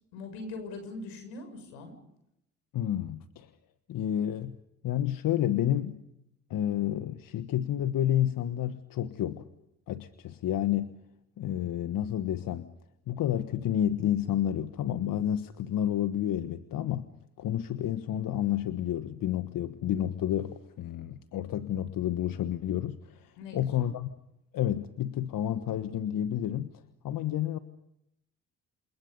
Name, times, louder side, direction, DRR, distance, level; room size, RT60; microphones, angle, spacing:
voice 1, 0.1-1.9 23.4-23.9, left 3 dB, 85° left, 6 dB, 6.9 m, -41 dB
voice 2, 2.7-3.5 3.9-4.6 4.8-6.0 6.5-9.5 9.9-11.0 11.4-12.7 13.1-17.1 17.4-24.1 24.5-26.7 27.0-27.6, left 11 dB, 65° left, 11 dB, 1.4 m, -30 dB
28.0 x 28.0 x 5.4 m, 0.79 s
hypercardioid pair, 60°, 36 cm